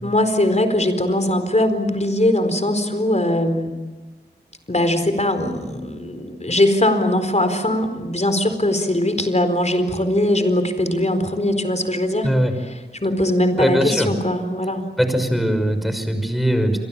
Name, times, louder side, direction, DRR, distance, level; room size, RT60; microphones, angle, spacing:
voice 1, 0.0-3.7 4.7-12.3 13.0-14.9, left 1 dB, 40° left, 8 dB, 4.3 m, -20 dB
voice 2, 13.6-14.1 15.0-16.8, equal, ahead, 8 dB, 5.7 m, -20 dB
29.0 x 24.0 x 7.4 m, 1.2 s
wide cardioid pair, 45°, 18 cm